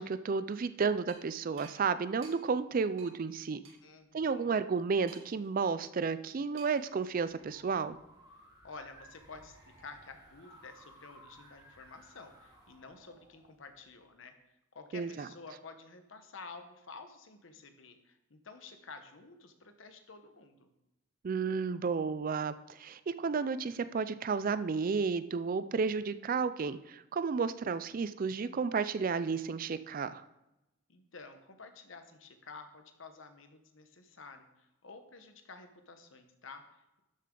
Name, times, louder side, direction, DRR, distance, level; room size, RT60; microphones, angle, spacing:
voice 1, 0.0-3.6 4.1-8.0 14.9-15.3 21.2-30.2, right 5 dB, 40° right, 13 dB, 0.4 m, -32 dB
sound 1, 1.1-1.2 1.6-1.8 2.2-2.4 3.0-3.1 3.6-3.8 5.1-5.5 6.6-6.9, right 5 dB, 75° right, 2.1 m, -53 dB
voice 2, 3.8-4.6 8.6-14.3 14.7-20.7 30.9-37.0, left 4 dB, 65° left, 7 dB, 1.1 m, -51 dB
sound 2, 6.9-14.1, right 1 dB, 20° right, 2.8 m, -59 dB
12.0 x 6.9 x 3.8 m, 0.93 s
head